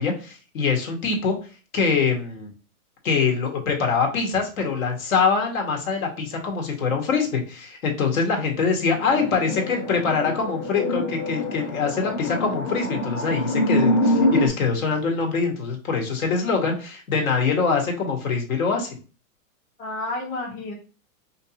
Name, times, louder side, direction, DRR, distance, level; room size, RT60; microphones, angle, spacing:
voice 1, 0.0-1.4 1.7-2.5 3.0-18.9, left 5 dB, 65° left, 2 dB, 1.5 m, -24 dB
voice 2, 8.9-9.9 19.8-20.7, left 2 dB, 20° left, -3 dB, 1.1 m, -33 dB
sound 1, 9.1-14.5, left 1 dB, 45° left, 1.0 m, -25 dB
5.1 x 2.8 x 2.8 m, 0.35 s
hypercardioid pair, 155°, 44 cm